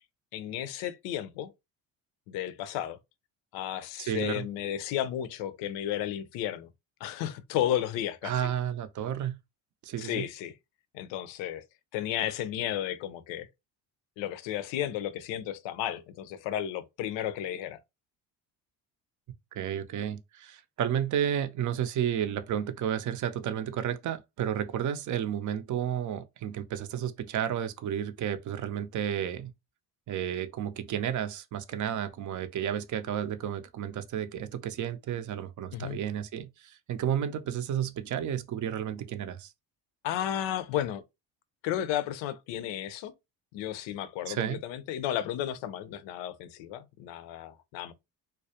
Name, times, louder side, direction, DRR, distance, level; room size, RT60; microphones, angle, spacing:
voice 1, 0.3-1.5 2.3-3.0 3.5-6.7 7.0-8.5 10.0-10.5 10.9-11.6 11.9-13.5 14.2-17.8 35.7-36.0 40.0-41.0 41.6-43.1 43.5-47.9, left 11 dB, 80° left, 0.5 m, -33 dB
voice 2, 4.0-4.5 8.2-9.4 9.8-10.3 19.5-29.5 30.1-39.5 44.3-44.6, right 9 dB, 45° right, 0.5 m, -32 dB
2.3 x 2.0 x 2.7 m
supercardioid pair, 80°, 44 cm